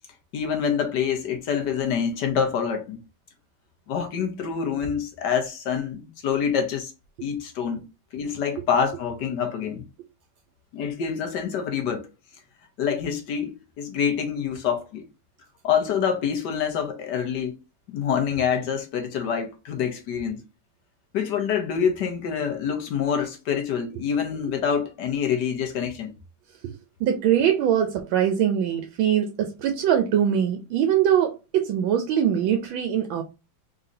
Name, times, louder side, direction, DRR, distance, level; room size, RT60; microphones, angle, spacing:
voice 1, 0.3-3.0 3.9-6.9 7.2-7.8 8.1-9.9 10.7-12.1 12.8-15.0 15.6-17.6 17.9-20.4 21.1-26.1, left 7 dB, 65° left, 1.4 m, -26 dB
voice 2, 27.0-33.2, right 9 dB, 80° right, 1.4 m, -22 dB
4.0 x 3.8 x 2.7 m
omnidirectional pair, 2.2 m